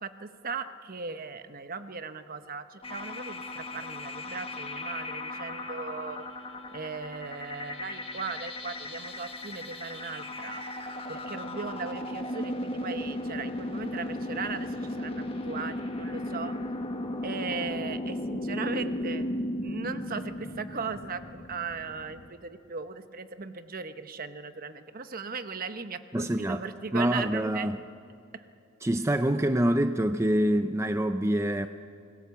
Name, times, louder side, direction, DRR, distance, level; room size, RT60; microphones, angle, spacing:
voice 1, 0.0-6.2 6.7-10.6 11.1-16.6 17.2-19.2 19.6-27.7 28.3-28.4, right 4 dB, 45° right, 10 dB, 1.0 m, -38 dB
sound 1, 2.8-22.3, left 1 dB, 30° left, 1.5 m, -36 dB
voice 2, 26.1-26.6 26.9-27.8 28.8-31.7, right 1 dB, 15° right, 9 dB, 0.5 m, -26 dB
25.5 x 19.0 x 7.1 m, 2.5 s
head